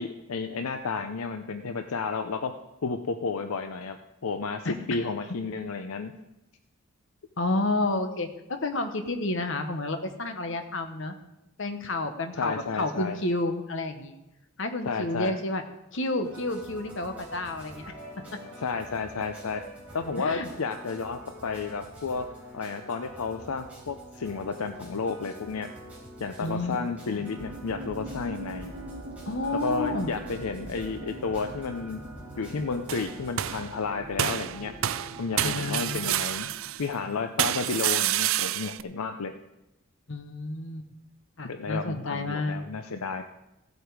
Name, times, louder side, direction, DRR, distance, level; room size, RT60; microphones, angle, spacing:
voice 1, 0.0-2.6 2.8-4.0 4.2-6.1 12.4-13.2 14.8-15.3 18.6-19.6 19.9-22.2 22.5-25.7 26.2-28.7 29.6-32.0 32.4-34.7 35.2-36.5 36.8-39.4 41.4-43.2, left 4 dB, 80° left, 7 dB, 0.6 m, -32 dB
voice 2, 7.4-11.2 11.6-14.2 14.6-15.6 15.9-17.9 20.2-20.5 26.4-26.8 27.1-27.3 29.3-30.1 35.4-36.1 40.1-40.8 41.4-42.6, left 2 dB, 55° left, 6 dB, 1.1 m, -30 dB
sound 1, 16.2-33.6, equal, 5° right, 4.0 m, -46 dB
sound 2, 27.4-37.2, right 2 dB, 85° right, 1.1 m, -44 dB
sound 3, 32.9-33.7 34.2-36.9 37.4-38.8, right 13 dB, 65° right, 0.4 m, -28 dB
16.0 x 8.1 x 4.8 m, 0.95 s
head